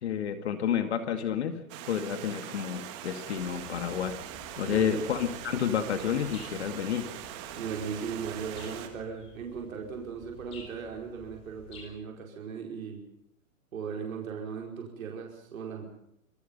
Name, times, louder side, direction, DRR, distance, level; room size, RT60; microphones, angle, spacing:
voice 1, 0.0-1.6 1.9-4.2 4.6-7.1, left 8 dB, 50° left, 9 dB, 2.2 m, -30 dB
Stream, 1.7-8.9, right 11 dB, 20° right, 1.6 m, -42 dB
sound 1, 3.4-11.8, left 4 dB, 15° left, 3.6 m, -52 dB
voice 2, 4.6-5.0 7.5-13.0 13.7-15.9, right 6 dB, 70° right, 1 dB, 5.1 m, -37 dB
26.5 x 21.5 x 5.5 m, 0.75 s
hypercardioid pair, 175°, 42 cm